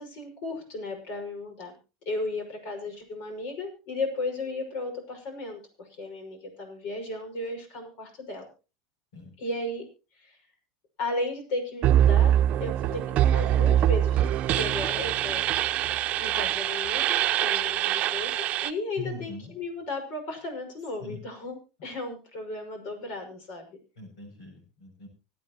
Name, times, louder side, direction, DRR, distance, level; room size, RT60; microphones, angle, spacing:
voice 1, 0.0-1.7 2.1-8.4 9.4-9.8 10.1-10.4 11.0-12.3 12.6-15.5 16.2-23.8, left 2 dB, 60° left, 5 dB, 5.8 m, -35 dB
sound 1, 11.8-18.7, right 11 dB, 45° right, 0.8 m, -24 dB
voice 2, 19.0-19.5 21.0-21.2 24.0-25.1, left 3 dB, 85° left, 3 dB, 7.1 m, -41 dB
25.5 x 8.9 x 3.0 m, 0.32 s
hypercardioid pair, 100°, 3 cm